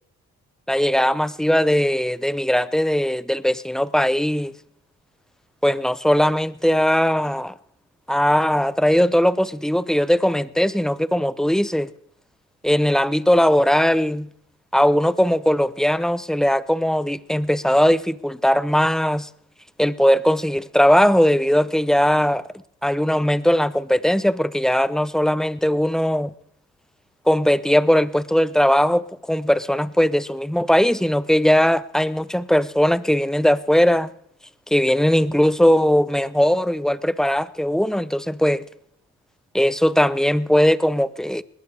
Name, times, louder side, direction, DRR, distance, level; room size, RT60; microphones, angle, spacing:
voice 1, 0.7-4.5 5.6-7.5 8.1-11.9 12.6-14.3 14.7-19.3 19.8-22.4 22.8-26.3 27.3-34.1 34.7-38.6 39.5-41.4, equal, ahead, 0.7 m, -19 dB
20.0 x 17.5 x 3.4 m
cardioid pair, 90°, 29 cm